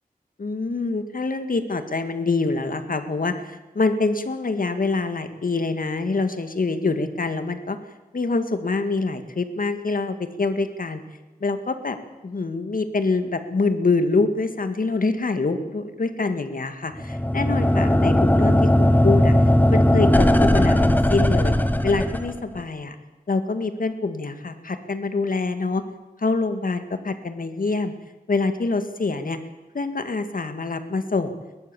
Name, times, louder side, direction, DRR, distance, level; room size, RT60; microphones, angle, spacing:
voice 1, 0.4-7.8 8.1-11.0 11.4-12.0 12.2-19.3 19.7-21.5 21.8-23.0 23.3-25.8 26.2-27.9 28.3-29.4 29.7-31.4, left 3 dB, 65° left, 9 dB, 2.0 m, -25 dB
sound 1, 17.0-22.6, left 1 dB, 10° left, 1.3 m, -18 dB
22.5 x 19.5 x 7.1 m, 1.1 s
wide cardioid pair, 90°, 15 cm